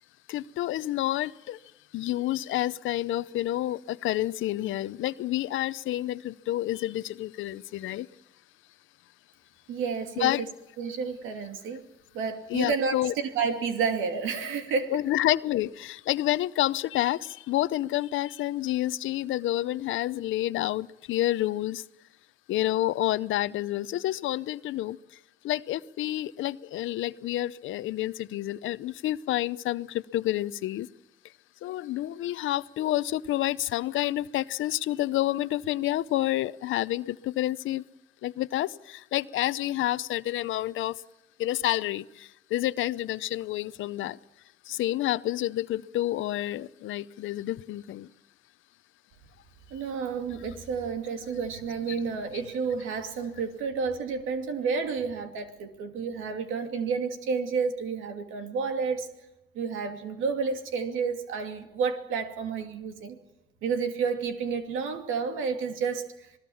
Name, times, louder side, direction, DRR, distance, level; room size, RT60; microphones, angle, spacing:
voice 1, 0.3-1.6 1.9-8.1 10.2-10.4 12.5-13.1 14.9-21.9 22.5-25.2 25.4-30.9 31.6-37.8 38.2-41.0 41.4-44.2 44.6-48.1 51.9-52.0, left 14 dB, 80° left, 0.7 m, -29 dB
voice 2, 9.7-10.5 10.8-11.8 12.1-15.0 49.7-59.1 59.5-63.2 63.6-66.3, right 5 dB, 85° right, 2.6 m, -30 dB
27.5 x 19.0 x 7.1 m
cardioid pair, 90°, 20 cm